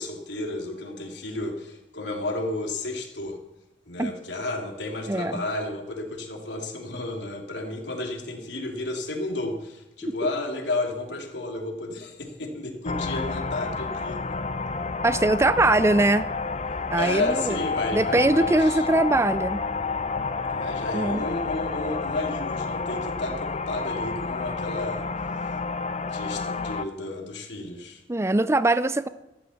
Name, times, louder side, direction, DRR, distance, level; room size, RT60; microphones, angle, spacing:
voice 1, 0.0-3.4 3.9-14.2 16.9-18.8 20.5-25.0 26.1-28.0, left 2 dB, 90° left, 2 dB, 3.1 m, -32 dB
voice 2, 5.1-5.4 15.0-16.3 16.9-17.6 17.9-19.6 20.9-21.3 28.1-29.1, right 2 dB, 15° right, 14 dB, 0.5 m, -22 dB
sound 1, 12.8-26.8, left 4 dB, 40° left, 0.8 m, -30 dB
14.0 x 12.5 x 7.2 m, 0.93 s
head